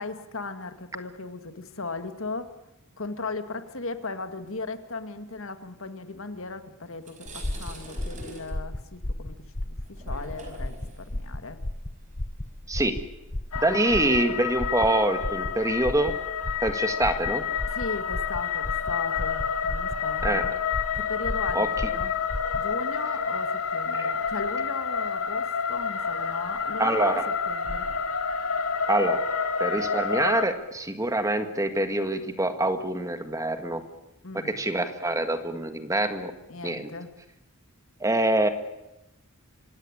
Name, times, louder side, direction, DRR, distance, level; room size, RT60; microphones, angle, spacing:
voice 1, 0.0-2.5 3.0-11.6 13.7-13.8 17.7-20.6 20.9-22.1 22.5-27.2 27.5-27.9 34.2-34.5 36.5-37.1, left 3 dB, 60° left, 9 dB, 2.0 m, -37 dB
sound 1, 6.5-6.6 6.9-14.2, right 2 dB, 35° right, 5.3 m, -47 dB
sound 2, 7.3-22.7, left 1 dB, 30° left, 0.9 m, -34 dB
sound 3, 13.5-30.4, left 6 dB, 80° left, 2.6 m, -29 dB
voice 2, 13.6-16.1 16.6-17.4 20.2-20.4 21.5-21.7 23.9-24.1 26.8-27.2 28.9-29.2 29.6-33.8 34.3-36.3 36.6-36.9 38.0-38.5, right 1 dB, 15° right, 8 dB, 1.7 m, -25 dB
26.0 x 17.5 x 9.9 m, 0.93 s
head